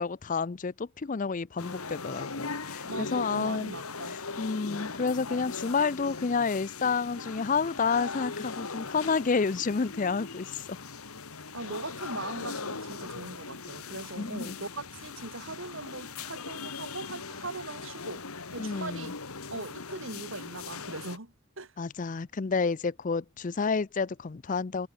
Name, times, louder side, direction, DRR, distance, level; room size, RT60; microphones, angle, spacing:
voice 1, 0.0-3.7 4.1-10.8 14.2-14.6 18.6-19.1 21.8-24.9, left 5 dB, 35° left, 0.4 m, -30 dB
sound 1, 1.6-21.2, left 4 dB, 85° left, 2.3 m, -40 dB
voice 2, 2.8-4.2 11.5-18.2 18.5-19.2 19.5-21.7, right 2 dB, 60° right, 2.9 m, -40 dB
head